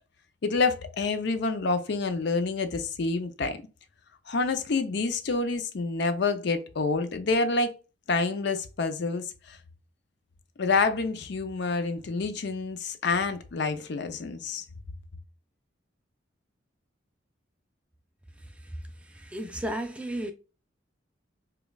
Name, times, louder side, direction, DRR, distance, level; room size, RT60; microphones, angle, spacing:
voice 1, 0.4-3.6 4.3-7.7 8.1-9.6 10.6-14.6, left 3 dB, 60° left, 0.5 m, -28 dB
voice 2, 19.0-20.3, right 1 dB, 5° right, 0.3 m, -34 dB
5.1 x 2.3 x 2.2 m
head